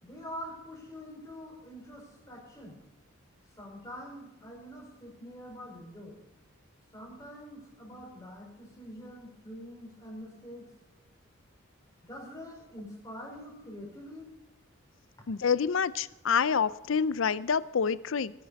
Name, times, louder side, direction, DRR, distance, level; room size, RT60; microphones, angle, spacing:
voice 1, 0.0-2.8 3.6-6.2 6.9-10.7 12.0-14.3, equal, 15° left, -2 dB, 4.9 m, -45 dB
voice 2, 15.3-18.3, left 6 dB, 65° left, 17 dB, 0.5 m, -27 dB
21.0 x 10.0 x 4.1 m, 0.95 s
head